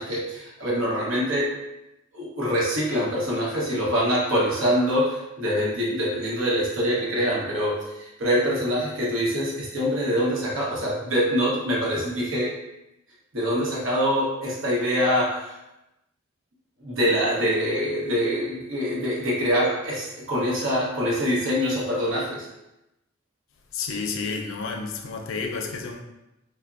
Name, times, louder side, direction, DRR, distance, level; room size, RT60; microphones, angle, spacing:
voice 1, 0.0-1.5 2.1-12.5 13.3-15.5 16.8-22.5, equal, 70° right, -5 dB, 0.9 m, -24 dB
voice 2, 23.7-26.0, left 4 dB, 70° left, 3 dB, 0.4 m, -30 dB
3.3 x 2.1 x 2.4 m, 0.92 s
head